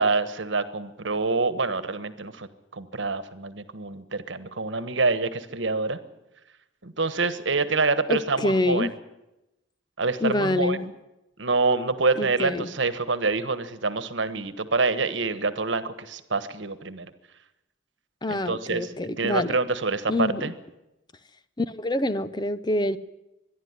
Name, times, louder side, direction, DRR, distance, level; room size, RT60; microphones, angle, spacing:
voice 1, 0.0-6.0 6.8-8.9 10.0-10.9 11.4-17.1 18.3-18.9 19.2-20.5, right 3 dB, 75° right, 12 dB, 1.3 m, -26 dB
voice 2, 8.1-8.9 10.2-10.8 12.2-12.7 18.2-19.5 20.1-20.5 21.6-23.0, left 2 dB, 20° left, 13 dB, 0.6 m, -26 dB
24.5 x 11.0 x 9.7 m, 0.94 s
head